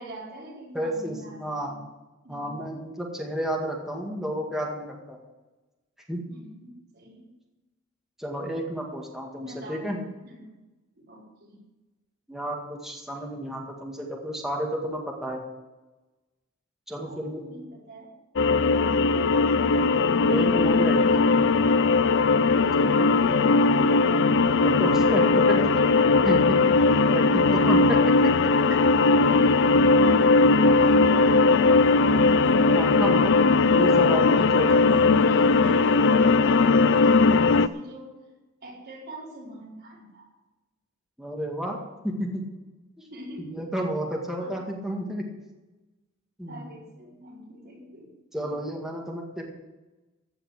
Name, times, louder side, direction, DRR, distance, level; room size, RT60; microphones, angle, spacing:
voice 1, 0.0-1.8 2.2-2.7 6.3-7.3 9.4-9.9 10.2-10.5 10.9-11.6 17.0-18.1 22.6-23.8 29.2-32.1 34.4-34.8 35.2-38.1 38.6-40.3 43.1-43.6 44.4-44.5 46.5-48.6, right 1 dB, 50° right, -4 dB, 4.8 m, -43 dB
voice 2, 0.7-1.7 2.3-5.2 6.1-6.2 8.2-10.0 12.3-15.4 16.9-17.4 19.0-19.2 20.3-21.3 22.8-23.1 24.6-25.7 26.0-28.8 32.7-33.4 33.7-34.8 41.2-42.5 43.0-43.1 43.4-45.3 46.4-46.7 48.3-49.5, equal, ahead, -1 dB, 2.0 m, -31 dB
sound 1, 18.4-37.7, left 3 dB, 60° left, 0.5 m, -19 dB
15.5 x 5.6 x 9.8 m, 1.1 s
head